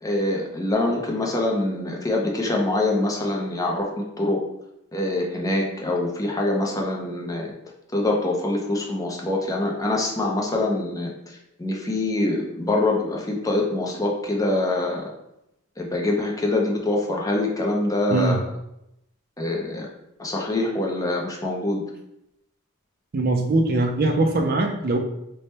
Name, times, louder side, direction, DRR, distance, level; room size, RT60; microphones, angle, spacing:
voice 1, 0.0-4.4 4.9-7.5 7.9-15.1 15.8-18.4 19.4-19.9 20.2-21.8, left 2 dB, 15° left, -1 dB, 0.6 m, -24 dB
voice 2, 23.1-25.0, right 2 dB, 45° right, 3 dB, 0.5 m, -21 dB
3.4 x 2.2 x 4.1 m, 0.83 s
head